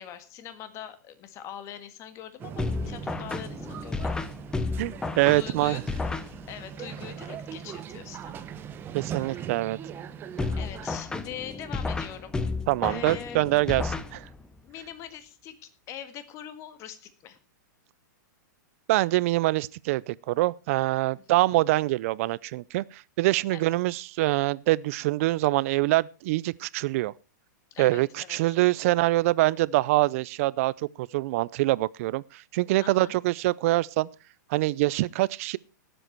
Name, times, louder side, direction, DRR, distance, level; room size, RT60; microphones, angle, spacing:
voice 1, 0.0-4.1 5.3-5.9 6.5-8.5 9.0-9.5 10.5-12.4 12.8-13.4 14.6-17.4 21.1-21.4 23.5-23.7 27.7-28.5 32.8-33.1, left 10 dB, 30° left, 1.7 m, -42 dB
sound 1, 2.4-10.9, right 8 dB, 20° right, 1.0 m, -40 dB
sound 2, 2.6-6.8 10.4-14.6, left 3 dB, 5° left, 0.8 m, -32 dB
voice 2, 4.8-5.8 8.9-9.8 12.7-14.3 18.9-27.1 27.8-30.7 31.0-34.1 34.5-35.6, right 18 dB, 45° right, 0.5 m, -25 dB
19.0 x 7.9 x 4.5 m
hypercardioid pair, 150°, 10 cm